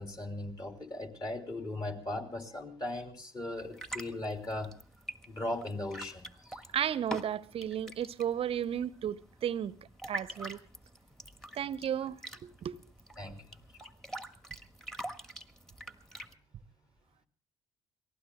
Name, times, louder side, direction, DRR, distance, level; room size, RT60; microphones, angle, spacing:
voice 1, 0.0-4.7 5.3-6.6 13.2-13.4, left 1 dB, 30° left, 3.3 m, -38 dB
sound 1, 3.6-16.3, right 1 dB, 5° left, 1.6 m, -46 dB
voice 2, 6.7-9.7 10.1-10.6 11.5-12.2 12.4-12.8, right 9 dB, 45° right, 0.9 m, -33 dB
28.5 x 19.0 x 2.3 m
figure-of-eight pair, 55°, 13 cm